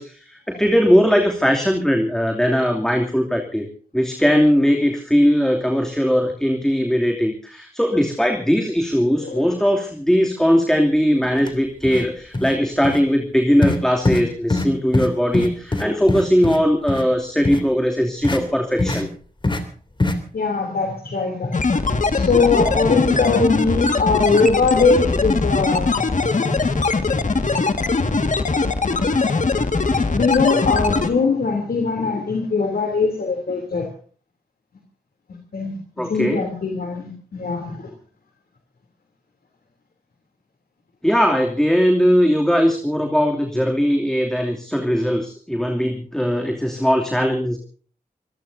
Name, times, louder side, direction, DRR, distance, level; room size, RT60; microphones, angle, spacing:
voice 1, 0.0-3.7 3.9-19.1 36.0-36.4 41.0-47.6, equal, 5° left, 2 dB, 2.8 m, -19 dB
voice 2, 9.2-9.5 20.3-21.5 22.1-25.9 30.1-33.9 35.5-35.8 36.1-37.9, left 4 dB, 80° left, 2 dB, 3.2 m, -21 dB
sound 1, 11.4-11.5 11.8-12.1 12.3-12.6 12.8-13.0 13.6-13.8 14.1-14.2 14.5-14.7 14.9-15.1 15.3-16.6 16.9-17.0 17.4-17.6 18.2-18.4 18.8-19.0 19.4-19.6 20.0-20.2, left 2 dB, 30° left, 3.0 m, -21 dB
sound 2, 21.5-31.1, left 3 dB, 55° left, 1.9 m, -21 dB
26.0 x 18.0 x 2.7 m, 0.42 s
cardioid pair, 65°, 16 cm